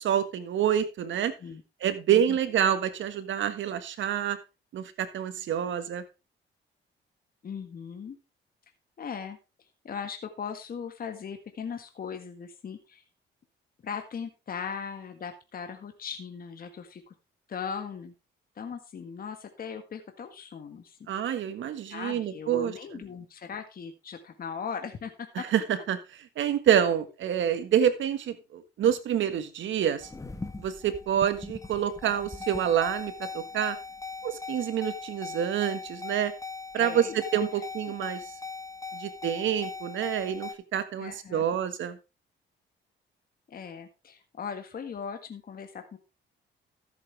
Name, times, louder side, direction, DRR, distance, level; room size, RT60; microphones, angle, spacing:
voice 1, 0.0-1.3 1.8-4.4 4.7-6.0 21.1-22.7 25.5-25.6 25.9-26.0 26.4-30.1 30.6-33.8 34.2-36.3 36.7-37.1 37.3-38.2 38.9-42.0, right 9 dB, 70° right, 10 dB, 1.6 m, -27 dB
voice 2, 7.4-8.2 9.0-9.4 9.8-13.0 13.8-17.1 17.5-18.1 18.5-21.1 21.8-25.1 25.4-25.5 36.7-37.6 41.0-41.5 43.5-46.0, left 6 dB, 45° left, 6 dB, 1.6 m, -39 dB
sound 1, 30.0-40.5, left 4 dB, 15° left, 1.3 m, -40 dB
13.5 x 7.8 x 3.4 m, 0.28 s
cardioid pair, 90°, 20 cm